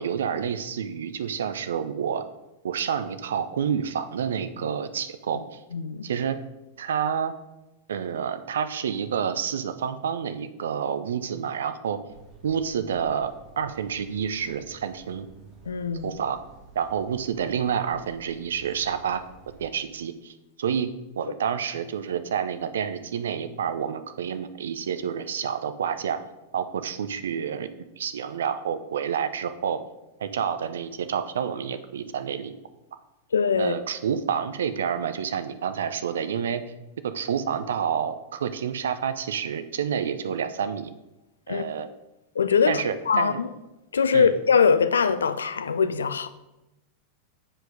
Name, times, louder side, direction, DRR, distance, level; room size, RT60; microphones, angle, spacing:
voice 1, 0.0-2.3 2.6-5.6 6.0-6.4 6.8-7.3 7.9-12.0 12.4-15.3 16.0-16.4 16.7-19.2 19.6-20.9 21.2-26.2 26.5-27.7 28.0-29.8 30.2-32.5 33.6-36.6 37.0-40.9 41.5-41.9 42.7-43.4 44.1-44.3, right 7 dB, 65° right, 0.6 m, -29 dB
voice 2, 5.7-6.0 15.7-16.1 33.3-33.7 41.5-41.6 42.4-43.5 43.9-46.3, left 6 dB, 70° left, 0.4 m, -22 dB
sound 1, 12.1-19.7, right 3 dB, 30° right, 1.9 m, -51 dB
7.6 x 5.1 x 5.1 m
figure-of-eight pair, 90°, 0 cm